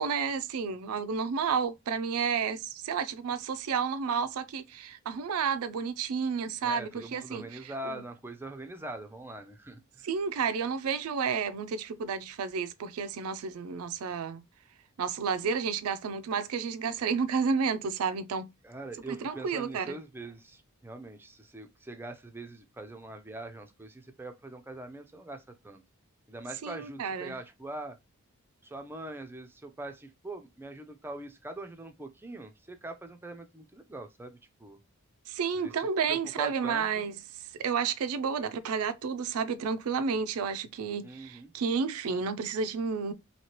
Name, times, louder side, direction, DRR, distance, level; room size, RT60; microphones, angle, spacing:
voice 1, 0.0-8.0 10.0-14.4 15.0-18.5 19.1-20.0 26.6-27.4 35.3-43.1, right 6 dB, 75° right, 0.4 m, -31 dB
voice 2, 6.6-10.1 18.6-25.8 26.3-28.0 28.6-34.8 35.6-35.7 36.1-37.0 41.0-41.5, right 2 dB, 10° right, 0.4 m, -43 dB
3.1 x 2.8 x 2.8 m
head